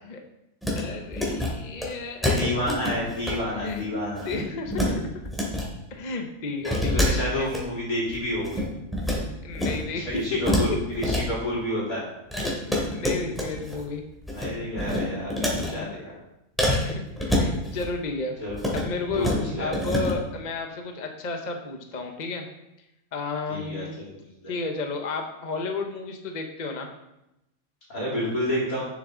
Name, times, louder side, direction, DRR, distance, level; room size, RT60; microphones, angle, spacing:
sound 1, 0.6-0.8 1.1-1.5 1.8-1.9 2.2-3.3 3.6-3.8 4.1-4.9 5.2-5.7 6.6-7.6 8.1-9.2 9.5-9.8 10.1-11.2 12.3-13.8 14.1-14.5 14.8-15.7 16.6-17.9 18.5-18.8 19.1-19.4 19.7-20.1, left 1 dB, ahead, 2.3 m, -26 dB
voice 1, 0.7-2.5 3.5-3.9 4.2-5.1 5.9-7.5 9.4-10.4 10.7-10.8 12.6-14.0 15.6-15.9 16.8-18.3 18.7-22.5 23.1-24.0 24.5-26.9, left 3 dB, 35° left, 4 dB, 1.0 m, -32 dB
voice 2, 2.4-4.3 6.6-8.7 9.9-12.0 14.3-16.1 18.4-18.8 19.1-19.7 23.5-24.1 24.4-24.5 27.9-28.9, equal, 80° left, -6 dB, 4.1 m, -29 dB
11.0 x 6.9 x 3.9 m, 0.89 s
omnidirectional pair, 1.5 m